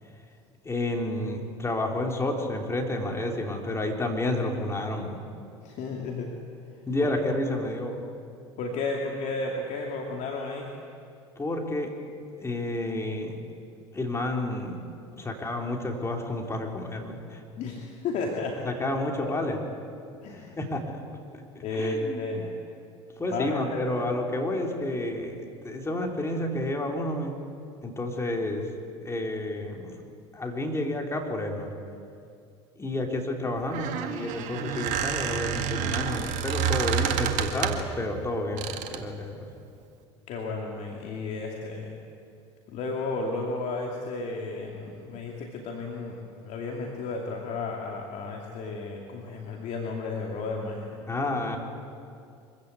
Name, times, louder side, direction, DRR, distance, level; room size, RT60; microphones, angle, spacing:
voice 1, 0.7-5.2 6.8-8.0 11.4-11.9 12.4-13.5 13.9-14.8 15.2-17.4 18.6-19.6 20.3-20.9 21.6-22.5 23.2-27.4 27.8-28.7 29.0-30.0 30.3-31.7 32.8-39.5 51.1-51.6, left 1 dB, 15° left, 1 dB, 3.4 m, -30 dB
voice 2, 5.6-6.3 8.6-10.7 17.6-18.6 19.2-19.4 20.2-20.6 21.6-22.5 23.3-23.8 40.3-41.9 42.7-51.3, left 3 dB, 50° left, 0 dB, 2.7 m, -33 dB
Squeak, 33.6-38.0 38.6-39.1, right 8 dB, 55° right, 1.9 m, -29 dB
24.5 x 15.5 x 8.3 m, 2.4 s
hypercardioid pair, 75°, 15 cm